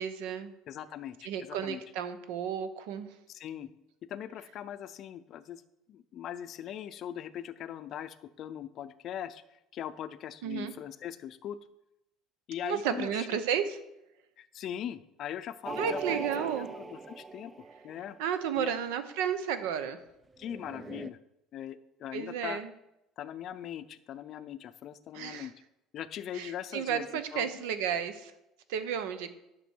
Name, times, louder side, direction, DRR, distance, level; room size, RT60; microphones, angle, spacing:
voice 1, 0.0-0.5 1.2-3.1 10.4-10.7 12.6-13.8 15.8-16.7 18.2-20.0 22.1-22.7 25.1-25.5 26.3-28.3 28.7-29.3, right 8 dB, 90° right, 12 dB, 0.8 m, -32 dB
voice 2, 0.7-1.8 3.3-3.7 4.1-5.6 5.9-9.4 9.7-11.6 12.5-13.4 14.4-16.5 16.8-17.5 17.8-18.2 18.6-18.7 20.4-21.2 21.5-22.6 23.2-25.5 25.9-27.1 27.3-27.5, left 10 dB, 45° left, 12 dB, 0.5 m, -40 dB
sound 1, 15.6-18.3 20.4-21.1, right 4 dB, 15° right, 0.3 m, -40 dB
11.0 x 6.1 x 4.5 m, 0.90 s
cardioid pair, 155°, 0 cm